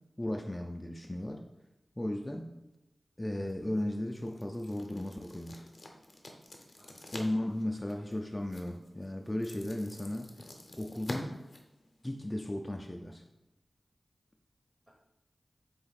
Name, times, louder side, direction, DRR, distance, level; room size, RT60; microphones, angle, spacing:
voice 1, 0.2-1.4 2.0-2.5 3.2-5.7 7.1-10.3 10.8-11.4 12.0-13.2, left 1 dB, 25° left, 2 dB, 0.3 m, -35 dB
sound 1, 3.3-12.4, left 2 dB, 60° left, 0.6 m, -49 dB
voice 2, 6.8-7.9 14.9-15.0, right 1 dB, 20° right, -2 dB, 0.8 m, -59 dB
4.1 x 2.6 x 4.0 m, 0.93 s
cardioid pair, 45°, 0 cm